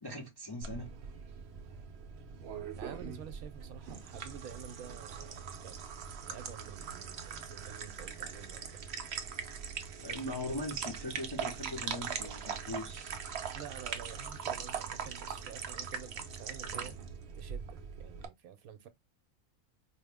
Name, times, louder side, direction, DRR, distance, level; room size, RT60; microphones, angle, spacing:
voice 1, 0.0-0.9 10.0-13.1, left 1 dB, 30° left, 0.4 m, -40 dB
sound 1, 0.6-18.3, right 7 dB, 55° right, 0.7 m, -41 dB
voice 2, 2.8-5.9 6.2-8.8 13.5-17.0 17.3-18.9, right 8 dB, 75° right, 1.1 m, -49 dB
4.8 x 2.0 x 3.4 m
omnidirectional pair, 1.6 m